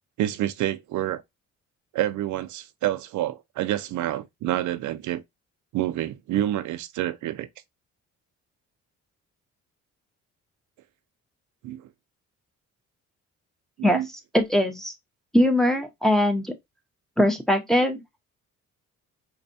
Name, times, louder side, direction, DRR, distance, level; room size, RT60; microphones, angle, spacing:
voice 1, 0.2-1.2 1.9-5.2 5.7-7.5 11.6-11.8 13.8-14.1, right 13 dB, 75° right, 0.5 m, -28 dB
voice 2, 14.3-14.9 15.3-16.5 17.2-18.2, left 1 dB, ahead, 0.8 m, -21 dB
4.1 x 2.3 x 2.5 m
cardioid pair, 90°, 30 cm